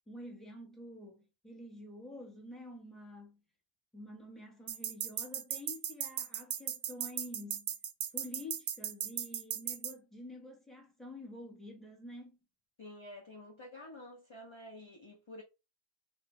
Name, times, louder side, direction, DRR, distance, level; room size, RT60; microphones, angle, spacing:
voice 1, 0.1-3.4 3.9-7.7 8.1-12.4, left 1 dB, ahead, 1.1 m, -48 dB
sound 1, 4.7-9.9, right 9 dB, 70° right, 0.9 m, -37 dB
voice 2, 12.8-15.4, left 1 dB, 35° left, 0.4 m, -49 dB
4.2 x 2.6 x 3.1 m
omnidirectional pair, 1.4 m